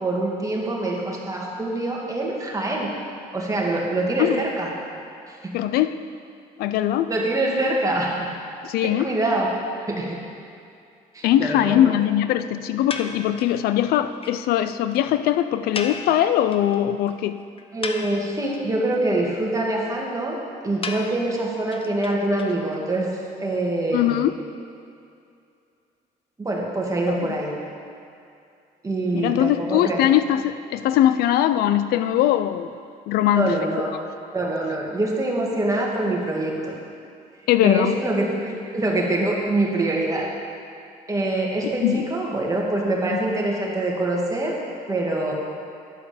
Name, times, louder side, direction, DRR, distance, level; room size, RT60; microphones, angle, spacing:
voice 1, 0.0-2.9 3.3-4.7 5.4-5.5 7.1-8.3 9.0-9.5 9.9-10.2 11.1-11.9 17.7-20.4 20.6-23.1 23.4-24.3 26.4-27.6 28.8-30.0 33.3-33.9 34.3-36.5 37.6-40.3 41.1-44.6 44.9-45.3, right 2 dB, 20° right, -2 dB, 2.0 m, -24 dB
voice 2, 5.5-6.0 6.6-7.1 8.6-9.1 11.2-17.4 23.9-24.4 27.1-27.3 29.1-32.7 33.1-33.5 37.5-38.0 41.6-42.1, left 12 dB, 80° left, 12 dB, 0.4 m, -21 dB
sound 1, 12.9-13.6 13.9-14.0 14.2-14.4 14.6-14.7 14.9-15.0 15.7-16.8 17.1-17.2 17.6-18.6 20.8-22.8, left 4 dB, 35° left, 0.7 m, -34 dB
10.5 x 4.8 x 6.8 m, 2.5 s
cardioid pair, 85°, 16 cm